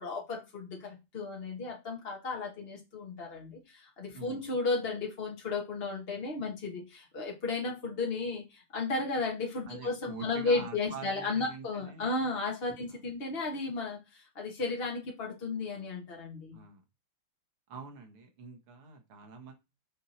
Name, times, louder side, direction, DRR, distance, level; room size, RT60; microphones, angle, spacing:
voice 1, 0.0-16.6, left 3 dB, 35° left, 1.0 m, -34 dB
voice 2, 9.7-12.1 12.8-13.0 16.5-16.8 17.7-19.5, right 5 dB, 80° right, 2.4 m, -46 dB
6.3 x 4.5 x 4.2 m
omnidirectional pair, 2.4 m